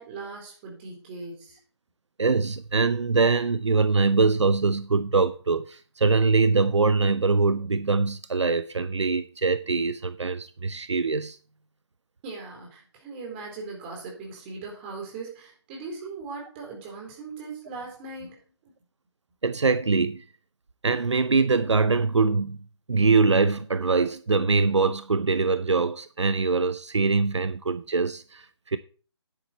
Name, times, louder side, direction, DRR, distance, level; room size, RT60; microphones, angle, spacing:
voice 1, 0.0-1.6 12.2-18.4, right 4 dB, 25° right, 4.0 m, -39 dB
voice 2, 2.2-11.4 19.4-20.2 20.8-22.6 22.9-28.8, right 4 dB, 80° right, 0.7 m, -23 dB
10.0 x 8.3 x 4.3 m
figure-of-eight pair, 150°, 15 cm